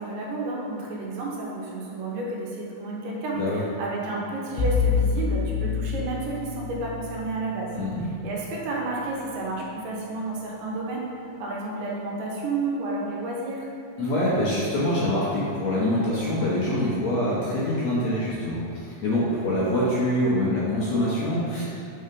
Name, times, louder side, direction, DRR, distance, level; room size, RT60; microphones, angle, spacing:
voice 1, 0.0-7.7 8.2-11.1 11.4-13.7, right 2 dB, 75° right, -3 dB, 2.4 m, -31 dB
Bowed string instrument, 4.6-9.7, left 5 dB, 80° left, 2.3 m, -28 dB
voice 2, 7.7-8.1 14.0-21.6, left 1 dB, 65° left, -8 dB, 2.0 m, -25 dB
5.6 x 4.3 x 5.2 m, 2.6 s
omnidirectional pair, 4.0 m